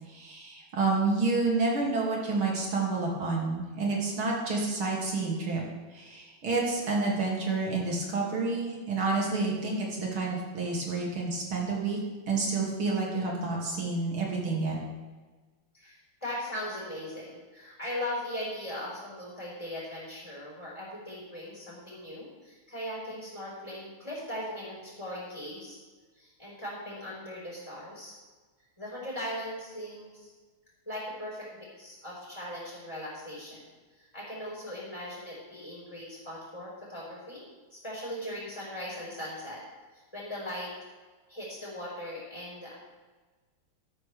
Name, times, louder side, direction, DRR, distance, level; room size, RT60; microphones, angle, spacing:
voice 1, 0.1-5.6 5.9-12.0 12.3-14.8, right 3 dB, 70° right, -2 dB, 3.4 m, -29 dB
voice 2, 15.7-25.8 26.1-28.1 28.8-30.3 30.9-33.6 34.0-37.4 37.7-39.6 40.1-40.7 41.3-42.7, left 1 dB, 10° left, -7 dB, 4.6 m, -39 dB
13.5 x 12.5 x 3.5 m, 1.3 s
omnidirectional pair, 2.4 m